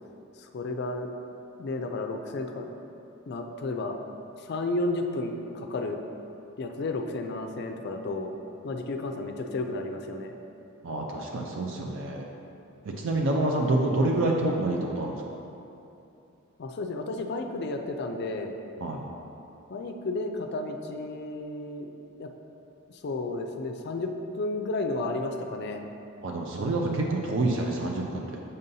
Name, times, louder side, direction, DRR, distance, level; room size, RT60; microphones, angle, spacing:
voice 1, 0.4-1.1 1.6-2.7 3.3-4.0 4.4-6.0 6.6-8.3 8.6-10.3 16.6-18.5 19.7-21.9 22.2-22.3 23.0-24.1 24.4-25.8, left 2 dB, 50° left, 5 dB, 0.4 m, -32 dB
voice 2, 10.8-12.3 13.0-15.2 18.8-19.0 26.2-28.4, right 2 dB, 60° right, 0 dB, 0.5 m, -27 dB
6.7 x 5.3 x 2.7 m, 2.8 s
head